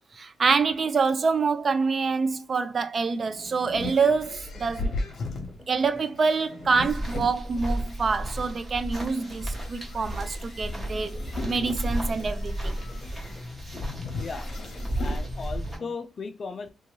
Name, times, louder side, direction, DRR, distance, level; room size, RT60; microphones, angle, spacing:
voice 1, 0.1-4.9 5.7-12.8, right 4 dB, 45° right, 0.3 m, -26 dB
sound 1, 2.9-8.0 8.6-15.2, left 2 dB, 65° left, 0.8 m, -38 dB
sound 2, 3.6-4.2 4.5-4.9 5.2-6.1 6.4-6.7 7.1-7.9 8.2-8.6 8.9-9.8 10.1-10.4 10.8-15.9, left 1 dB, 10° left, 0.9 m, -47 dB
sound 3, 6.8-15.8, right 1 dB, 20° right, 0.9 m, -33 dB
voice 2, 14.2-14.5 15.0-16.7, left 4 dB, 45° left, 0.4 m, -36 dB
2.6 x 2.3 x 3.0 m
cardioid pair, 100°, 0 cm